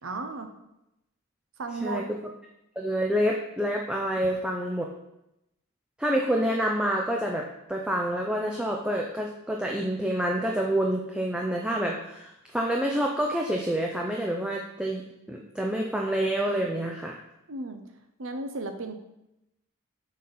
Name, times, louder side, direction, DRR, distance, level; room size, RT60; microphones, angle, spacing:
voice 1, 0.0-0.5 1.6-2.0 17.5-17.8 18.2-18.9, right 3 dB, 70° right, 6 dB, 0.9 m, -34 dB
voice 2, 2.8-4.9 6.0-15.0 15.3-17.2, right 1 dB, 5° right, -1 dB, 0.4 m, -27 dB
6.2 x 4.1 x 5.5 m, 0.88 s
head